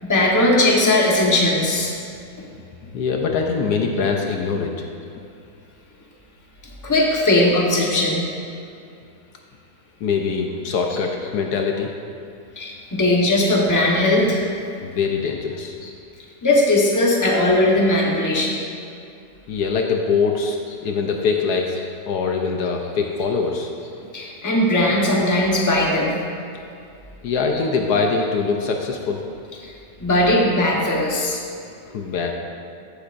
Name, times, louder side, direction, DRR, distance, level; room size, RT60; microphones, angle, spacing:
voice 1, 0.0-2.0 6.8-8.2 12.6-14.5 15.8-15.9 16.4-18.6 24.1-26.1 29.6-29.7 30.0-31.4, left 1 dB, 15° left, -3 dB, 1.0 m, -18 dB
voice 2, 2.8-4.7 10.0-11.9 14.8-15.8 19.5-23.7 27.2-29.2 31.9-32.3, left 5 dB, 70° left, 2 dB, 1.2 m, -23 dB
14.0 x 8.5 x 2.6 m, 2.5 s
omnidirectional pair, 1.8 m